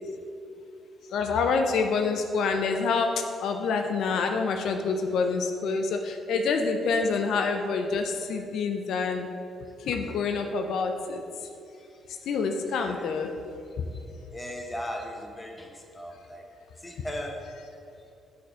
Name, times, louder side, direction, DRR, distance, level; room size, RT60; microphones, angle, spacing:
voice 1, 1.1-9.3 9.8-11.2 12.2-13.3 13.8-13.9, left 4 dB, 75° left, 5 dB, 0.5 m, -27 dB
voice 2, 12.8-13.1 14.3-16.4 16.8-17.5, equal, 15° left, 2 dB, 0.9 m, -37 dB
6.3 x 4.3 x 5.5 m, 2.6 s
cardioid pair, 90°, 0 cm